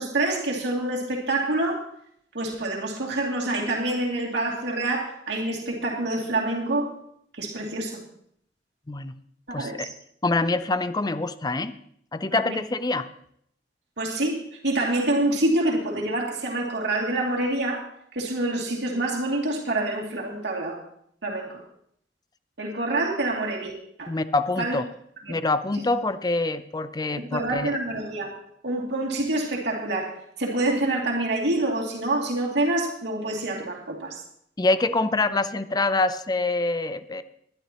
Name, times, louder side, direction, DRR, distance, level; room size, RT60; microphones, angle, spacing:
voice 1, 0.0-1.9 2.3-6.9 7.3-8.0 9.5-9.9 12.3-12.6 14.0-17.8 18.1-20.8 21.2-21.6 22.6-23.7 24.0-24.1 24.6-24.8 25.2-25.3 27.2-28.3 28.6-34.2, right 2 dB, 75° right, -1 dB, 2.7 m, -27 dB
voice 2, 9.5-9.9 10.2-11.7 12.1-13.1 24.1-24.8 25.3-27.8 34.6-37.2, left 2 dB, 25° left, 13 dB, 0.6 m, -25 dB
21.0 x 11.5 x 3.0 m, 0.69 s
head